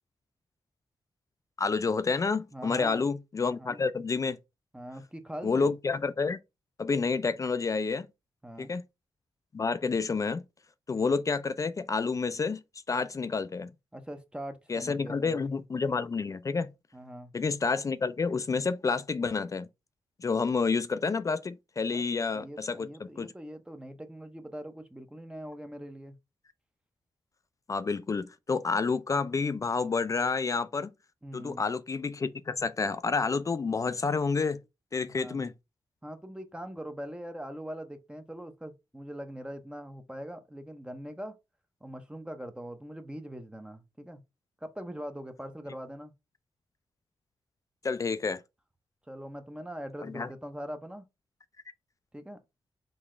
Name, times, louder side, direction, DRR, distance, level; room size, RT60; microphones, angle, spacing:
voice 1, 1.6-4.4 5.4-6.4 6.8-8.1 8.6-8.8 9.5-10.4 10.9-12.6 12.9-13.7 14.7-16.7 17.3-19.7 20.2-23.3 27.7-30.9 31.3-34.6 34.9-35.5 47.8-48.4 50.0-50.3, left 4 dB, 35° left, 0.3 m, -29 dB
voice 2, 2.5-3.1 3.6-3.8 4.7-5.7 8.4-8.7 13.9-15.4 16.9-17.3 21.9-22.0 22.3-26.2 31.2-31.6 35.1-35.5 36.0-41.4 41.8-44.2 44.6-46.1 49.1-51.0 52.1-52.4, equal, 10° right, 0.6 m, -42 dB
3.9 x 2.3 x 3.1 m
cardioid pair, 70°, 10 cm